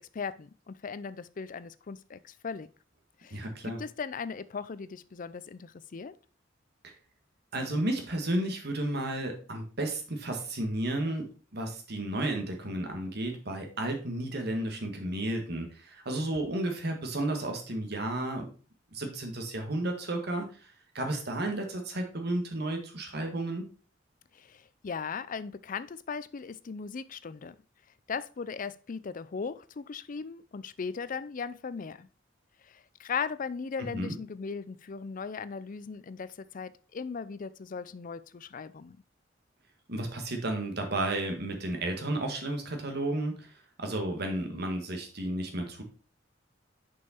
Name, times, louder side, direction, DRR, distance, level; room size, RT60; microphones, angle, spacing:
voice 1, 0.0-2.7 3.2-6.1 24.3-27.6 28.1-32.1 32.6-39.0, left 5 dB, 45° left, 0.4 m, -38 dB
voice 2, 3.3-3.8 7.5-18.5 18.9-23.6 33.8-34.2 39.9-43.5 43.8-45.8, right 1 dB, 55° right, 1.8 m, -32 dB
6.3 x 5.5 x 4.4 m
head